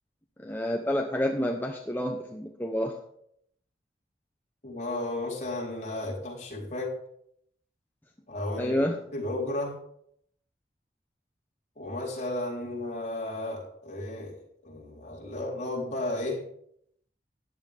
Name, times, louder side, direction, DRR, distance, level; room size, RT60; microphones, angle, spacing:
voice 1, 0.4-3.0 8.6-9.0, left 1 dB, 10° left, 2 dB, 0.9 m, -29 dB
voice 2, 4.6-7.0 8.3-9.8 11.8-16.5, left 1 dB, 40° left, -3 dB, 3.9 m, -34 dB
14.0 x 10.5 x 3.5 m, 0.70 s
head